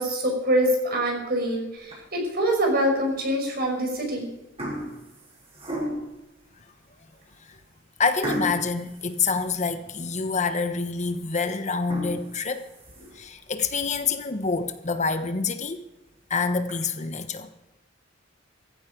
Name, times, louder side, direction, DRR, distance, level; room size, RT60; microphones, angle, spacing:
voice 1, 0.0-4.3, right 1 dB, 55° right, 5.5 m, -25 dB
sound 1, 1.8-2.3 2.9-3.0 3.8-4.1 4.4-6.2 6.8-6.9 7.3-7.4 8.2-10.0 10.4-10.5 11.0-11.1 11.7-13.3 13.8-13.9 14.3-14.4 14.7-14.8 15.1-15.2 16.1-16.7, equal, 35° right, 7.0 m, -35 dB
voice 2, 8.0-12.7 13.1-15.8 16.3-17.5, left 4 dB, 40° left, 1.1 m, -27 dB
16.5 x 15.0 x 5.2 m
head